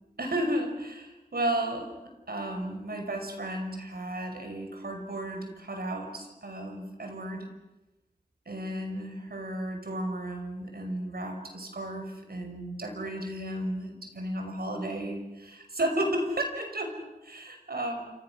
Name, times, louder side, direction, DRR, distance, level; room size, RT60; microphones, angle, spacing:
voice 1, 0.2-7.5 8.5-18.1, right 1 dB, 75° right, 5 dB, 5.8 m, -33 dB
28.5 x 27.5 x 6.4 m, 1.0 s
wide cardioid pair, 50°, 16 cm